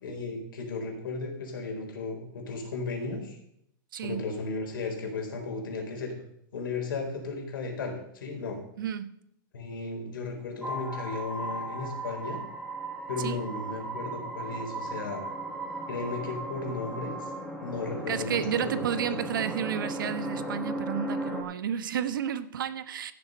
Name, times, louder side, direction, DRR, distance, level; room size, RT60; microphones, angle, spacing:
voice 1, 0.0-3.4 4.0-6.1 6.5-8.6 9.5-12.4 13.1-15.2 15.9-17.1 17.6-18.7 19.1-19.2, left 3 dB, 80° left, 4.2 m, -35 dB
voice 2, 3.9-4.3 8.8-9.1 13.2-13.4 18.1-23.1, right 9 dB, 75° right, 1.0 m, -31 dB
sound 1, 10.6-21.4, right 1 dB, ahead, 1.1 m, -36 dB
14.5 x 6.8 x 5.4 m
supercardioid pair, 180°, 11 cm